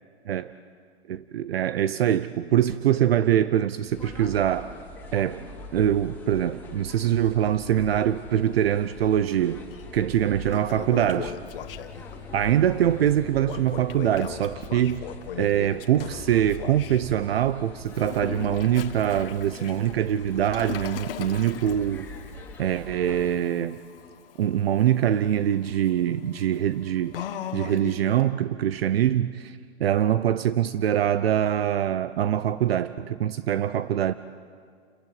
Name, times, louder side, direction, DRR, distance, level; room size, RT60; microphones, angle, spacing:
voice 1, 1.1-4.7 5.1-5.5 5.7-9.6 9.9-11.3 12.3-15.1 15.4-22.1 22.6-23.8 24.4-27.1 27.5-34.1, right 10 dB, 60° right, 14 dB, 0.8 m, -24 dB
sound 1, 3.9-23.3, left 2 dB, 5° left, 3.0 m, -43 dB
Toilet flush, 9.7-9.8 10.3-12.2 13.4-17.0 17.9-28.2, left 10 dB, 55° left, 1.4 m, -39 dB
29.5 x 16.0 x 9.5 m, 2.1 s
hypercardioid pair, 155°, 33 cm